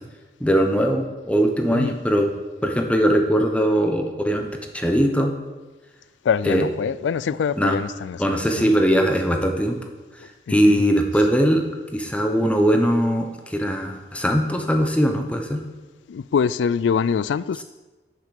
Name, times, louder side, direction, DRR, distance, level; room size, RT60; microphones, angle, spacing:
voice 1, 0.4-2.3 2.6-4.5 4.7-5.3 6.5-6.7 7.6-7.8 8.2-9.8 10.5-11.6 11.9-15.6, equal, 5° left, 1.0 m, -20 dB
voice 2, 6.2-8.7 10.2-10.8 16.1-17.6, left 6 dB, 85° left, 0.3 m, -24 dB
8.5 x 6.7 x 6.6 m
head